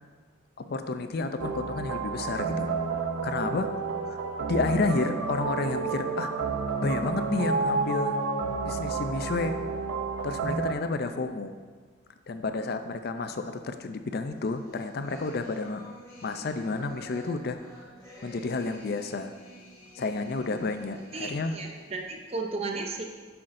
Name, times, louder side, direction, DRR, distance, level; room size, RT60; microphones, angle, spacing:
voice 1, 0.6-2.7 3.2-3.7 4.1-4.2 4.5-6.3 6.8-8.2 8.6-9.6 10.2-11.5 12.3-15.8 16.2-17.6 18.2-19.3 19.9-21.6, left 3 dB, 50° left, 8 dB, 0.4 m, -30 dB
sound 1, 1.4-10.7, right 4 dB, 90° right, 0.6 m, -30 dB
sound 2, 14.4-22.3, equal, 15° left, 1.6 m, -50 dB
voice 2, 21.1-23.0, right 3 dB, 30° right, 2 dB, 0.5 m, -34 dB
11.5 x 5.8 x 2.6 m, 1.5 s
head